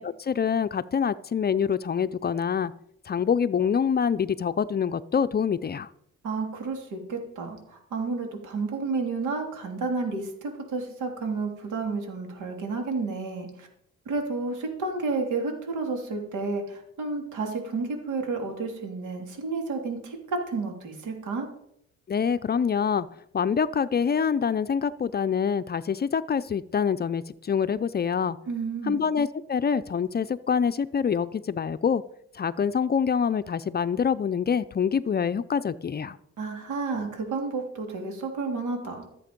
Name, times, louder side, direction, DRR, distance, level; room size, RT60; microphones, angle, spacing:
voice 1, 0.0-2.7 3.1-5.9 22.1-23.1 23.3-28.4 28.9-32.0 32.3-36.2, left 7 dB, 35° left, 14 dB, 0.5 m, -25 dB
voice 2, 6.2-13.7 14.0-21.5 28.5-29.0 36.4-39.1, right 3 dB, 80° right, 3 dB, 3.0 m, -31 dB
14.0 x 7.7 x 5.2 m, 0.73 s
cardioid pair, 90°, 30 cm